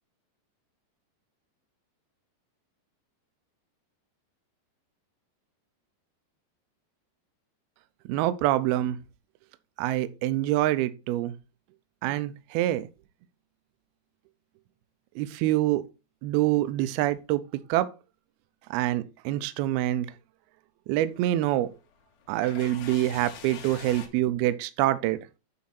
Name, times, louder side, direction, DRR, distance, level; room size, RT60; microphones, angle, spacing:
voice 1, 8.1-9.0 9.8-11.3 12.0-12.9 15.2-15.8 16.2-17.4 17.7-17.9 18.7-20.1 20.9-21.7 22.3-25.4, right 14 dB, 85° right, 2.2 m, -26 dB
sound 1, 21.0-24.1, left 8 dB, 65° left, 2.5 m, -45 dB
9.8 x 4.3 x 4.2 m
omnidirectional pair, 5.2 m